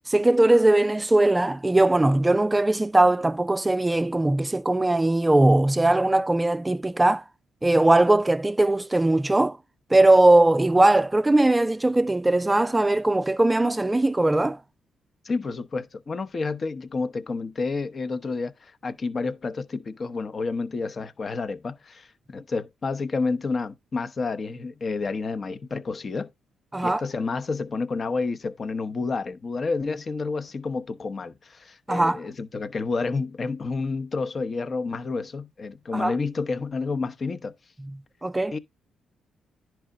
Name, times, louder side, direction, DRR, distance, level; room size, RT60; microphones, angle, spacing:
voice 1, 0.1-7.2 7.6-9.6 9.9-14.6 26.7-27.0 31.9-32.2 35.9-36.1 38.2-38.6, right 2 dB, 15° right, 0.4 m, -20 dB
voice 2, 15.2-26.3 26.8-37.5 38.5-38.6, left 4 dB, 45° left, 0.9 m, -30 dB
10.5 x 4.7 x 3.6 m
supercardioid pair, 65°, 0 cm